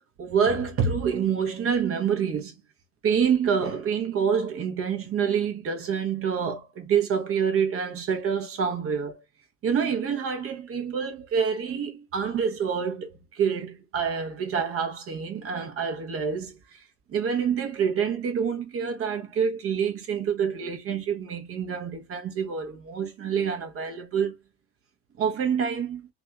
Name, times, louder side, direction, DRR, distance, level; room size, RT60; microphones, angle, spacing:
voice 1, 0.2-2.5 3.0-9.2 9.6-16.8 17.1-24.4 25.2-26.1, right 7 dB, 35° right, 1.0 m, -27 dB
4.0 x 2.4 x 2.2 m
figure-of-eight pair, 65°, 38 cm